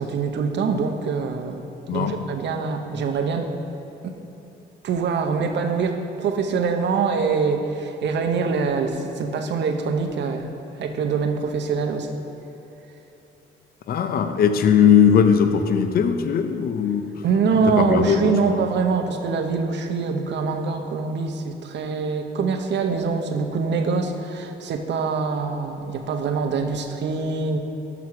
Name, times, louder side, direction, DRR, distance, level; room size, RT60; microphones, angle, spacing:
voice 1, 0.0-3.5 4.0-4.1 4.8-12.1 17.2-27.6, right 5 dB, 60° right, 5 dB, 0.7 m, -24 dB
voice 2, 13.9-17.1 17.8-18.6, left 7 dB, 50° left, 7 dB, 0.5 m, -19 dB
6.1 x 5.9 x 5.9 m, 2.8 s
cardioid pair, 90°, 20 cm